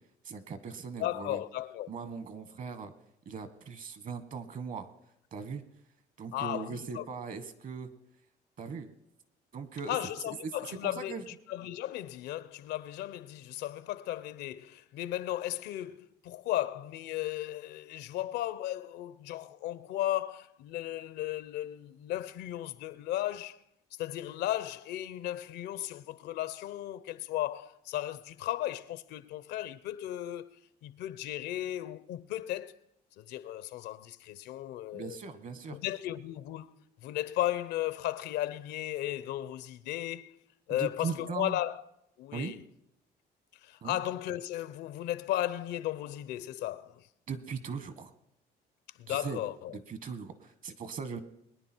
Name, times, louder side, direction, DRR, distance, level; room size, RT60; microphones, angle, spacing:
voice 1, 0.2-1.4 1.9-2.9 3.2-4.9 5.3-5.6 6.2-7.9 8.6-8.9 9.5-9.9 10.3-10.5 10.8-11.2 34.9-35.8 40.7-41.6 42.3-42.5 43.8-44.0 47.3-48.1 49.1-49.4 49.7-51.2, right 5 dB, 50° right, 1.5 m, -39 dB
voice 2, 1.0-1.9 6.3-7.0 9.9-23.6 24.0-30.5 30.8-32.8 33.2-35.2 35.7-36.7 37.0-40.3 40.7-41.8 42.2-42.6 43.6-47.0 49.0-49.8, left 13 dB, 85° left, 0.7 m, -35 dB
22.5 x 10.0 x 4.5 m
cardioid pair, 110°, 17 cm